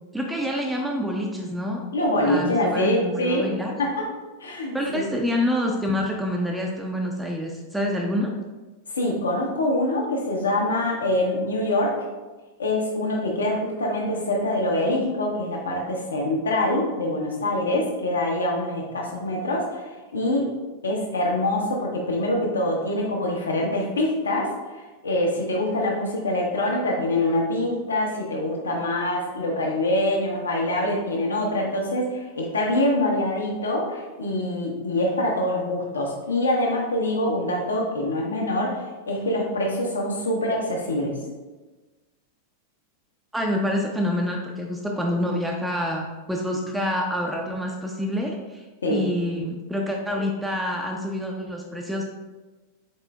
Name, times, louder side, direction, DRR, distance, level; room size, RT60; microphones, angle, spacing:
voice 1, 0.1-1.8 2.2-3.7 4.7-8.3 43.3-48.6 48.9-52.0, left 1 dB, 5° right, 0 dB, 0.4 m, -27 dB
voice 2, 1.9-3.5 3.8-4.1 4.4-5.0 8.9-12.0 12.6-20.5 20.8-41.2 48.8-49.0, left 1 dB, 75° left, -1 dB, 0.9 m, -25 dB
5.3 x 4.1 x 2.2 m, 1.2 s
figure-of-eight pair, 90°, 0 cm